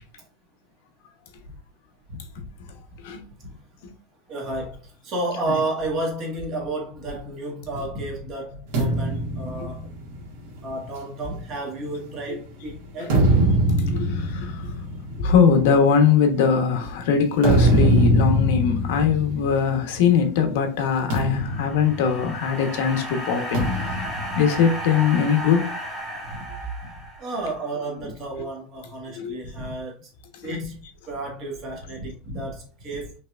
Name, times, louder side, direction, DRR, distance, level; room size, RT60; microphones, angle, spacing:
voice 1, 4.3-9.9 10.6-13.2 18.9-19.1 26.2-26.4 26.8-26.9 27.2-30.1 30.4-33.1, right 2 dB, 30° right, 1.7 m, -32 dB
sound 1, 8.7-12.3 12.8-20.3 20.5-20.8 21.1-22.7 23.5-25.3, right 1 dB, 65° right, 1.8 m, -24 dB
voice 2, 13.9-14.7 15.2-24.0 24.4-25.7 29.2-29.4 30.4-30.6, left 6 dB, 70° left, 1.1 m, -21 dB
sound 2, 21.3-27.5, equal, ahead, 1.4 m, -34 dB
5.6 x 3.4 x 2.4 m
supercardioid pair, 180°, 0 cm